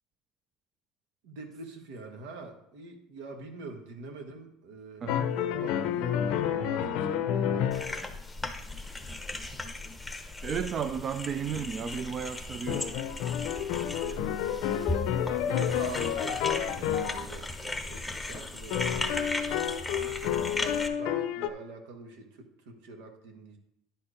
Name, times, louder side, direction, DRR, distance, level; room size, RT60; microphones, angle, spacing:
voice 1, 1.2-5.1 5.4-8.2 14.0-14.4 15.1-19.5 19.9-23.6, right 3 dB, 85° right, 1.5 m, -45 dB
voice 2, 5.0-5.3 10.4-12.9, right 7 dB, 35° right, 0.4 m, -33 dB
sound 1, 5.1-8.1 11.9-12.0 12.7-17.3 18.7-21.5, left 9 dB, 70° left, 0.6 m, -30 dB
sound 2, 7.7-20.9, left 2 dB, 5° left, 0.8 m, -37 dB
10.5 x 4.5 x 5.1 m
cardioid pair, 135°, 0 cm